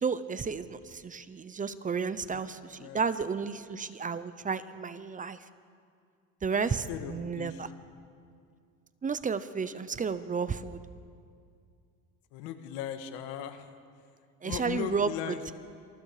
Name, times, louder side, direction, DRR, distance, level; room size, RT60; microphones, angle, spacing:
voice 1, 0.0-5.4 6.4-7.7 9.0-10.8 14.4-15.5, right 5 dB, 20° right, 13 dB, 0.8 m, -32 dB
voice 2, 6.5-7.7 12.3-13.7 14.4-15.5, left 9 dB, 85° left, 8 dB, 2.0 m, -38 dB
27.5 x 26.5 x 5.0 m, 2.3 s
cardioid pair, 120°, 36 cm